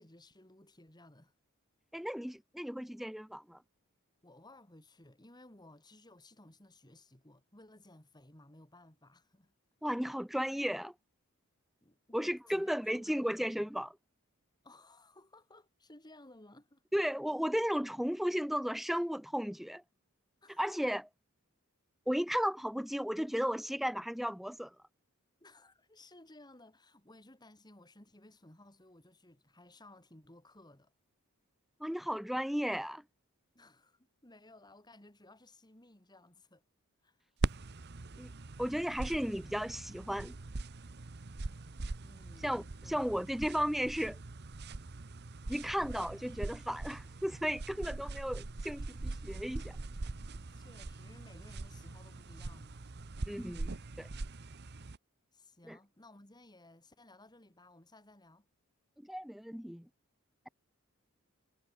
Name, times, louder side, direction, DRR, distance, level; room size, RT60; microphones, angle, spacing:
voice 1, 0.0-1.3 2.0-2.1 4.2-9.5 9.8-9.9 11.8-13.7 14.6-16.8 20.4-20.7 25.4-30.9 33.5-36.6 37.0-37.2 42.0-43.3 47.8-47.9 50.0-50.1 50.5-52.9 55.3-58.5, left 1 dB, 20° left, 3.0 m, -58 dB
voice 2, 1.9-3.6 9.8-10.9 12.1-13.9 16.9-19.8 20.6-21.1 22.1-24.7 31.8-33.0 38.2-38.3 38.6-40.3 42.4-44.2 45.5-49.8 53.3-53.7 54.0-54.1 55.7-55.8 59.1-59.9, equal, ahead, 0.4 m, -34 dB
sound 1, 37.4-55.0, right 2 dB, 50° right, 0.9 m, -42 dB
head